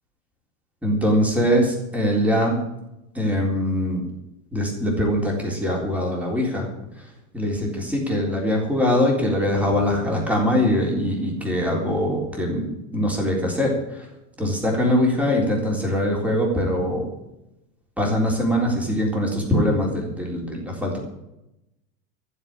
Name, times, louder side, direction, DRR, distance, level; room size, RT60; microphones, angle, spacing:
voice 1, 0.8-2.6 3.1-4.1 4.5-6.7 7.3-14.1 14.4-17.1 18.0-21.0, equal, 5° right, -1 dB, 3.7 m, -22 dB
15.0 x 7.6 x 8.8 m, 0.89 s
supercardioid pair, 145°, 41 cm